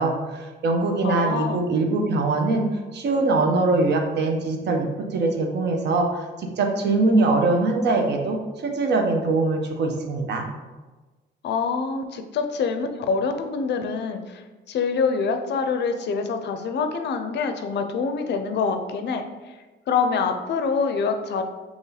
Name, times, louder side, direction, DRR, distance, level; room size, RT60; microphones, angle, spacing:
voice 1, 0.0-2.7 2.9-10.5, right 3 dB, 60° right, 3 dB, 0.6 m, -22 dB
voice 2, 1.0-1.6 11.4-14.4 14.7-19.3 19.9-21.4, left 5 dB, 60° left, 7 dB, 0.4 m, -25 dB
3.0 x 2.7 x 3.9 m, 1.2 s
cardioid pair, 90°, 20 cm